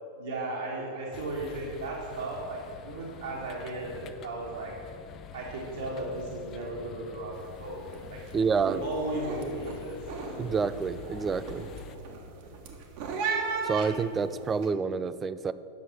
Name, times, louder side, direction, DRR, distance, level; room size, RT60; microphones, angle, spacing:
voice 1, 0.2-4.8 5.3-8.2 8.6-10.0, right 2 dB, 65° right, -5 dB, 1.7 m, -35 dB
sound 1, 1.1-12.0, left 7 dB, 30° left, 0.5 m, -47 dB
sound 2, 7.3-7.6 7.9-8.3 8.7-14.7, right 4 dB, 45° right, 1.2 m, -36 dB
voice 2, 8.3-8.8 10.4-11.7 13.6-15.5, right 5 dB, 20° right, 15 dB, 0.3 m, -28 dB
9.4 x 6.8 x 6.1 m, 2.9 s
figure-of-eight pair, 90°, 0 cm